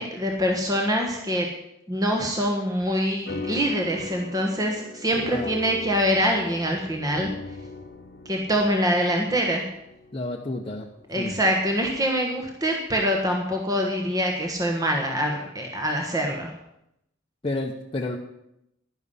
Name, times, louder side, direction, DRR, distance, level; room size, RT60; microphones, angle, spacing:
voice 1, 0.0-1.5 1.9-7.3 8.2-9.7 11.1-16.5, equal, 20° right, 1 dB, 1.3 m, -24 dB
sound 1, 3.3-12.0, left 3 dB, 50° left, 1.1 m, -39 dB
voice 2, 10.1-10.9 11.2-11.4 17.4-18.2, left 2 dB, 25° left, -1 dB, 0.8 m, -30 dB
11.0 x 10.5 x 5.6 m, 0.81 s
head